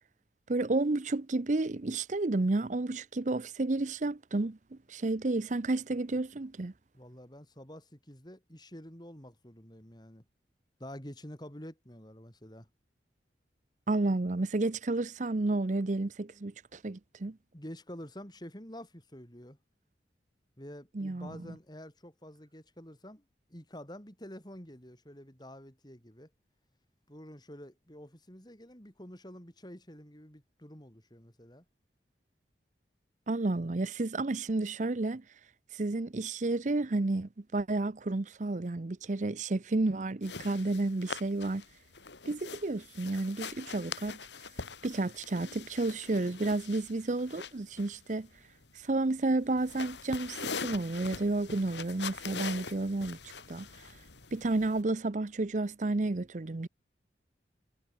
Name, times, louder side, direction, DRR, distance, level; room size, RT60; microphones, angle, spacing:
voice 1, 0.5-6.7 13.9-17.4 20.9-21.5 33.3-35.2 35.7-41.6 42.3-44.2 44.8-48.3 48.8-53.2 53.5-53.7 54.3-56.7, right 2 dB, 45° right, 0.7 m, -31 dB
voice 2, 6.9-10.2 10.8-12.7 17.5-19.6 20.6-26.3 27.1-31.6, equal, 25° left, 6.5 m, -48 dB
sound 1, 40.2-54.8, left 5 dB, 85° left, 3.2 m, -43 dB
head